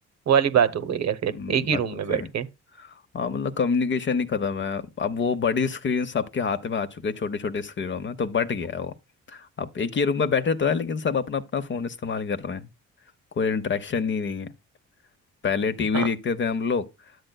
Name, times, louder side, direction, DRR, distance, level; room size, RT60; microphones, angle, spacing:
voice 1, 0.3-2.5 15.9-16.1, right 8 dB, 60° right, 0.9 m, -23 dB
voice 2, 1.3-1.8 2.1-2.3 2.8-8.9 9.3-12.7 13.4-14.5 15.4-16.9, left 5 dB, 40° left, 0.8 m, -26 dB
11.0 x 7.8 x 2.3 m
cardioid pair, 90°, 30 cm